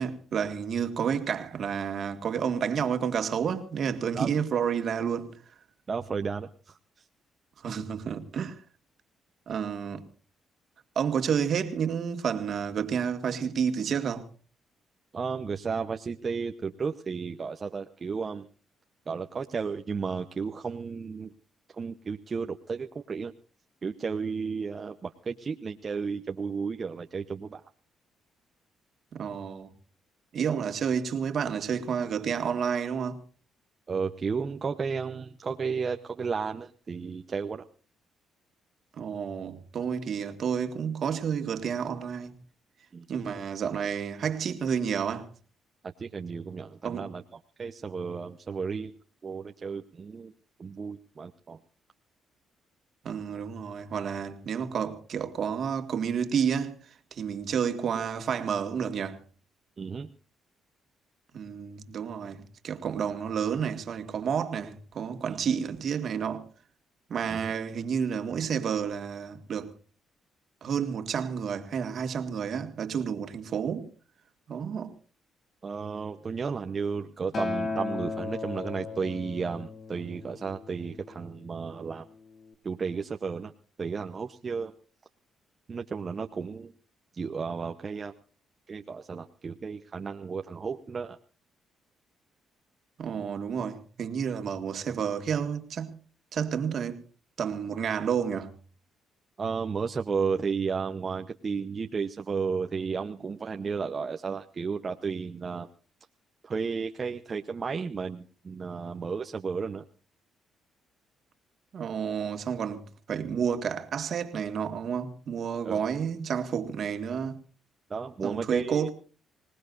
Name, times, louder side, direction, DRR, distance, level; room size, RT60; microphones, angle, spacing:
voice 1, 0.0-5.3 7.6-8.6 9.5-10.0 11.0-14.3 29.1-29.7 30.3-33.2 39.0-42.3 43.1-45.3 46.8-47.1 53.0-56.8 57.1-59.2 61.3-66.5 67.1-69.7 70.6-73.9 74.5-74.9 93.0-96.0 96.3-97.0 97.4-98.5 111.7-117.4 118.2-118.9, right 7 dB, 60° right, 2.0 m, -30 dB
voice 2, 5.9-6.8 15.1-18.5 19.1-21.3 21.7-23.3 23.8-27.6 33.9-37.6 42.9-43.1 46.0-49.0 49.2-50.3 50.6-51.6 59.8-60.1 67.3-67.5 75.6-82.0 82.6-83.5 83.8-84.7 85.7-86.7 87.1-88.1 88.7-91.2 99.4-105.7 106.4-109.8 115.6-115.8 117.9-118.9, right 5 dB, 40° right, 0.9 m, -33 dB
Acoustic guitar, 77.3-81.6 82.5-82.6, left 3 dB, 50° left, 2.4 m, -36 dB
25.5 x 19.0 x 2.6 m
cardioid pair, 90°, 0 cm